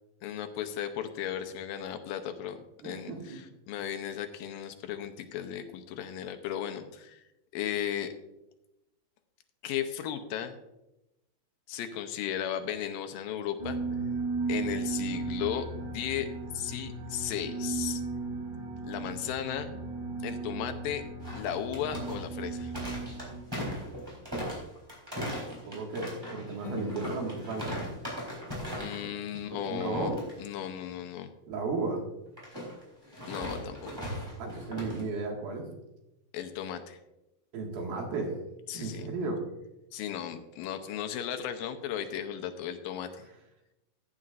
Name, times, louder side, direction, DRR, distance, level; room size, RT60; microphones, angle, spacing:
voice 1, 0.2-7.2 7.5-8.1 9.6-10.6 11.7-13.8 14.5-16.3 16.5-18.0 18.8-19.7 20.2-21.0 21.3-22.7 28.8-31.3 33.3-34.2 36.3-37.0 38.7-39.1 39.9-43.3, left 10 dB, 80° left, 7 dB, 2.4 m, -35 dB
voice 2, 2.8-3.4 25.2-27.9 29.7-30.2 31.5-32.0 34.4-35.7 37.5-38.4 38.7-39.4, right 3 dB, 90° right, 1 dB, 3.7 m, -34 dB
sound 1, 13.6-23.4, right 3 dB, 50° right, 4.1 m, -36 dB
sound 2, 21.2-29.1 29.3-29.6 29.9-30.3 32.4-35.0, equal, 5° right, 3.4 m, -38 dB
sound 3, 26.6-32.9, left 5 dB, 15° left, 4.4 m, -47 dB
15.0 x 9.8 x 2.5 m, 0.92 s
omnidirectional pair, 4.2 m